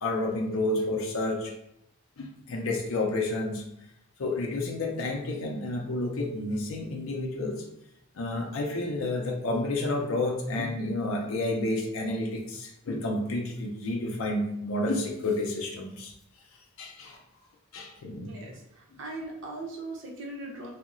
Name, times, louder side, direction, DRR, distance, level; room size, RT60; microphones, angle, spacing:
voice 1, 0.0-1.5 2.2-3.6 4.2-7.6 8.1-16.1 16.8-17.2 17.7-18.4, left 2 dB, 75° left, 1 dB, 0.5 m, -30 dB
voice 2, 18.3-20.7, right 2 dB, 65° right, -2 dB, 0.8 m, -39 dB
2.8 x 2.0 x 3.7 m, 0.78 s
head